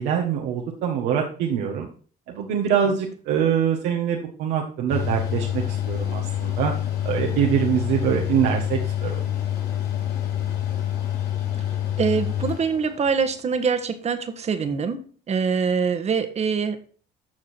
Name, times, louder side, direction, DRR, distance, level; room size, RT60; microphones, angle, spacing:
voice 1, 0.0-1.9 2.3-6.7 7.0-9.2, right 8 dB, 85° right, 0 dB, 1.6 m, -24 dB
Mechanical fan, 4.9-13.3, left 11 dB, 70° left, 3.3 m, -27 dB
voice 2, 12.0-16.8, right 5 dB, 40° right, 9 dB, 1.4 m, -24 dB
14.0 x 4.8 x 4.5 m, 0.42 s
cardioid pair, 110°, 17 cm